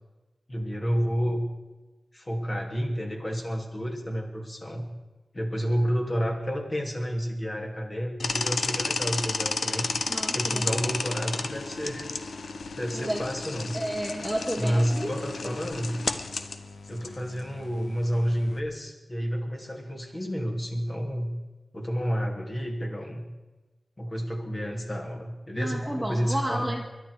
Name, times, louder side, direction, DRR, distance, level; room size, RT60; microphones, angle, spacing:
voice 1, 0.5-1.5 2.1-4.9 5.3-9.9 10.3-12.1 12.7-13.8 14.6-16.0 16.9-21.3 21.7-23.2 24.0-26.7, equal, 30° left, 2 dB, 2.7 m, -30 dB
sound 1, 8.2-18.6, left 4 dB, 90° left, 1.0 m, -33 dB
voice 2, 10.1-10.9 12.9-13.2 13.7-15.1 25.6-26.9, right 1 dB, 5° left, -1 dB, 1.9 m, -32 dB
22.0 x 11.5 x 4.9 m, 1.2 s
wide cardioid pair, 110°, 0 cm